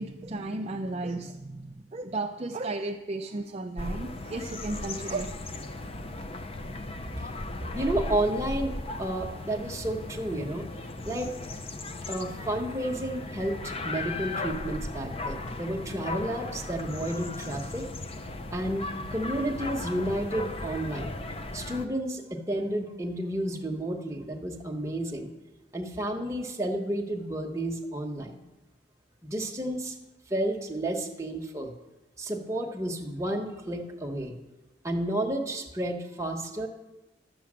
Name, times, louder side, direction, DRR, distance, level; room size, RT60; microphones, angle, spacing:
voice 1, 0.0-5.4, right 2 dB, 35° right, 3 dB, 0.5 m, -34 dB
sound 1, 3.8-21.9, left 2 dB, 30° left, 0.5 m, -37 dB
voice 2, 7.7-10.7 11.0-11.3 12.1-17.9 18.5-18.8 19.1-21.1 21.5-25.3 25.7-28.4 29.2-29.9 30.3-31.7 32.2-34.4 34.8-36.7, right 1 dB, 15° right, 1 dB, 1.1 m, -31 dB
11.5 x 7.1 x 7.4 m, 1.0 s
head